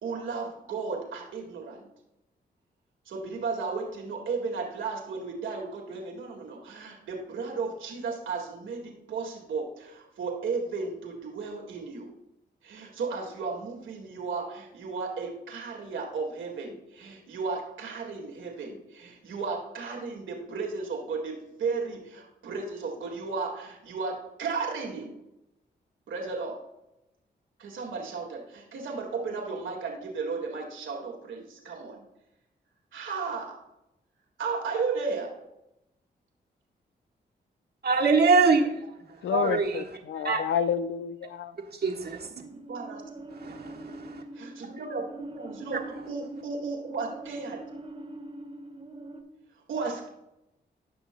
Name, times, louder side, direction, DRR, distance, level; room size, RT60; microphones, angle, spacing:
voice 1, 0.0-1.9 3.1-12.1 12.6-25.2 26.1-26.6 27.6-32.1 32.9-33.6 34.4-35.3 42.5-43.3 44.3-47.6 49.7-50.1, right 4 dB, 85° right, 1.9 m, -34 dB
voice 2, 37.8-38.7 39.3-39.8 40.2-40.4 41.8-42.3 43.4-44.2, right 4 dB, 55° right, 1.5 m, -23 dB
voice 3, 39.2-41.5, left 8 dB, 80° left, 0.5 m, -29 dB
sound 1, 42.4-49.2, right 2 dB, 30° right, 1.3 m, -43 dB
15.5 x 6.2 x 2.2 m
cardioid pair, 55°, 20 cm